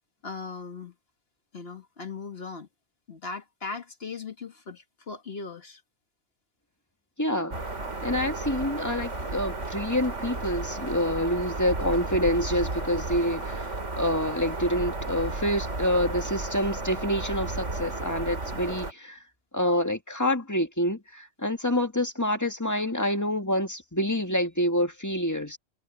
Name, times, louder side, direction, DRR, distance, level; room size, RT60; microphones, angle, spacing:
voice 1, 0.2-0.9 1.5-2.7 3.1-5.8, left 4 dB, 55° left, 1.7 m, -38 dB
voice 2, 7.2-7.6 8.0-13.7 14.0-19.2 19.5-25.6, left 1 dB, 15° left, 1.9 m, -27 dB
sound 1, 7.5-18.9, right 2 dB, 75° right, 4.3 m, -33 dB
omnidirectional pair, 1.3 m